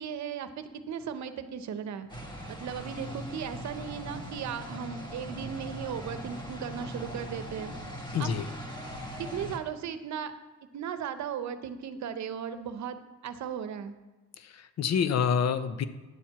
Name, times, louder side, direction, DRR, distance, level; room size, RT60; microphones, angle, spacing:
voice 1, 0.0-2.1 2.5-7.7 8.2-8.3 9.2-10.3 10.7-13.9, right 8 dB, 65° right, 10 dB, 0.8 m, -36 dB
sound 1, 2.1-9.6, equal, 15° left, 1.6 m, -40 dB
voice 2, 8.1-8.5 14.4-15.8, left 7 dB, 60° left, 12 dB, 0.7 m, -27 dB
9.7 x 4.4 x 7.4 m, 1.2 s
cardioid pair, 90°, 30 cm